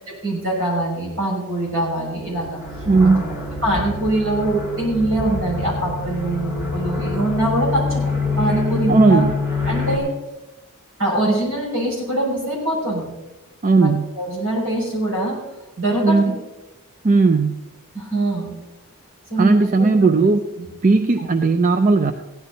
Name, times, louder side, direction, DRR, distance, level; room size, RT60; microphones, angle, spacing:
voice 1, 0.1-2.6 3.0-3.2 3.6-9.3 9.6-10.1 11.0-13.1 13.8-13.9 14.2-15.4 15.8-16.2 17.9-18.5 19.3-19.9 21.2-21.3, right 1 dB, 65° right, -3 dB, 5.9 m, -23 dB
sound 1, 2.2-10.0, left 3 dB, 20° right, 3.1 m, -26 dB
voice 2, 2.9-3.2 8.9-9.3 13.6-14.1 16.0-16.4 17.0-17.6 19.4-20.4 20.8-22.1, right 3 dB, 35° right, 8 dB, 0.4 m, -16 dB
16.0 x 11.0 x 4.0 m, 0.99 s
head